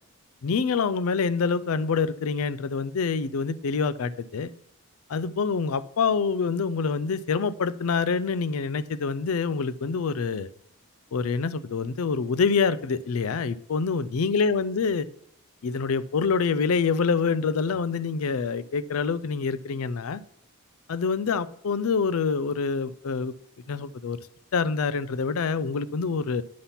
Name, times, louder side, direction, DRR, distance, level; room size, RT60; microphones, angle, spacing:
voice 1, 0.4-4.5 5.1-10.5 11.1-15.1 15.6-20.2 20.9-23.3 23.7-24.2 24.5-26.4, left 5 dB, 75° left, 16 dB, 0.4 m, -26 dB
8.4 x 5.7 x 5.7 m, 0.70 s
head